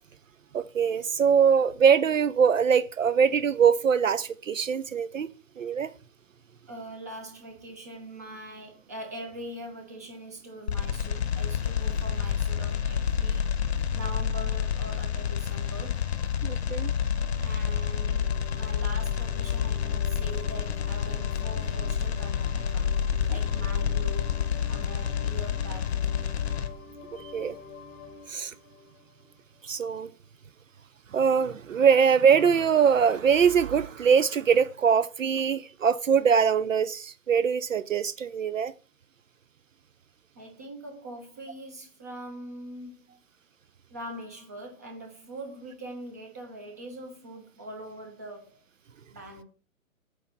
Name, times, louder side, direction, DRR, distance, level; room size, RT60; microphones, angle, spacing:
voice 1, 0.5-5.3 5.6-5.9 16.4-16.9 27.1-27.6 28.3-28.5 29.6-30.1 31.1-38.7, right 7 dB, 65° right, 0.5 m, -23 dB
voice 2, 6.7-16.0 17.4-22.9 23.3-26.1 40.3-43.2 43.9-48.6 49.1-49.4, right 1 dB, 10° right, 0.5 m, -42 dB
sound 1, 10.7-26.7, left 8 dB, 50° left, 0.9 m, -28 dB
sound 2, 15.5-29.9, left 5 dB, 15° left, 0.9 m, -47 dB
8.2 x 2.9 x 5.5 m
figure-of-eight pair, 130°, 43 cm